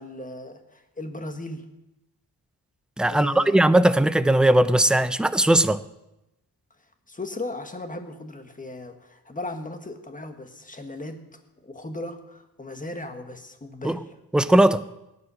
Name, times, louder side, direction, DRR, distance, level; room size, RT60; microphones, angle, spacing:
voice 1, 0.0-1.7 3.1-3.6 7.1-11.2 11.6-14.1 14.5-14.6, left 2 dB, 20° left, 1.5 m, -37 dB
voice 2, 3.0-5.8 13.8-14.0 14.3-14.8, right 1 dB, ahead, 0.4 m, -19 dB
21.0 x 9.7 x 6.3 m
wide cardioid pair, 165°, 38 cm